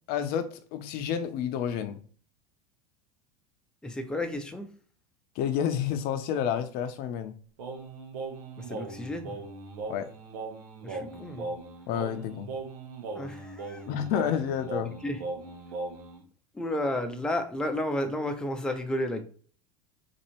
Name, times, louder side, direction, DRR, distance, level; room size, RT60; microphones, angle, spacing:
voice 1, 0.1-2.0 5.4-7.3 9.9-10.1 11.9-12.5 13.9-14.9, left 9 dB, 50° left, 0.6 m, -30 dB
voice 2, 3.8-4.7 8.6-9.4 10.8-11.5 13.1-13.8 15.0-15.2 16.5-19.2, left 1 dB, 5° left, 0.6 m, -32 dB
Singing, 7.6-16.2, right 3 dB, 75° right, 0.9 m, -39 dB
4.1 x 2.6 x 2.9 m
hypercardioid pair, 85°, 20 cm